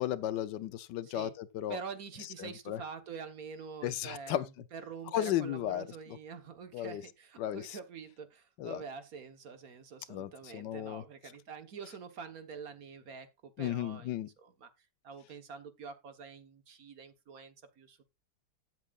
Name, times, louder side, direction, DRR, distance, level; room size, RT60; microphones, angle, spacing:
voice 1, 0.0-1.8 2.4-2.8 3.8-4.4 5.1-5.8 6.7-7.0 7.4-7.6 8.6-8.8 10.1-11.0 13.6-14.3, left 12 dB, 80° left, 1.3 m, -34 dB
voice 2, 1.0-1.3 1.7-14.7 15.0-18.0, right 6 dB, 55° right, 1.6 m, -46 dB
15.0 x 7.7 x 2.4 m
omnidirectional pair, 1.9 m